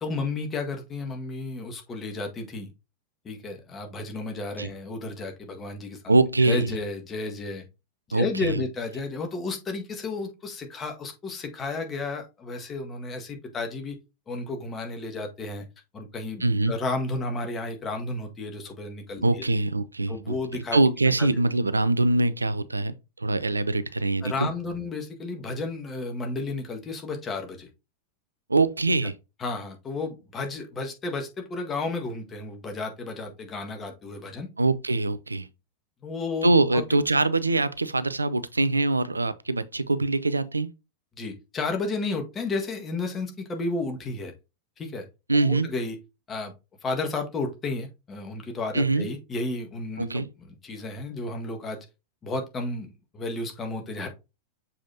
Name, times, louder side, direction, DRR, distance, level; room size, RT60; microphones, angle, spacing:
voice 1, 0.0-2.7 3.3-6.1 6.4-7.6 8.1-14.0 14.3-15.7 15.9-19.5 20.1-20.8 24.2-27.7 29.4-34.5 36.0-37.0 41.2-44.3 44.8-45.1 45.4-46.0 46.3-46.5 46.8-51.8 52.2-52.9 53.1-54.1, left 3 dB, 20° left, 1.6 m, -32 dB
voice 2, 6.1-6.8 8.1-8.6 16.4-16.7 19.2-20.4 20.7-24.5 28.5-29.2 34.6-35.5 36.4-40.7 45.3-45.7 48.7-49.1 50.0-50.3, right 2 dB, 80° right, 0.4 m, -23 dB
6.9 x 5.0 x 2.7 m
figure-of-eight pair, 90°, 0 cm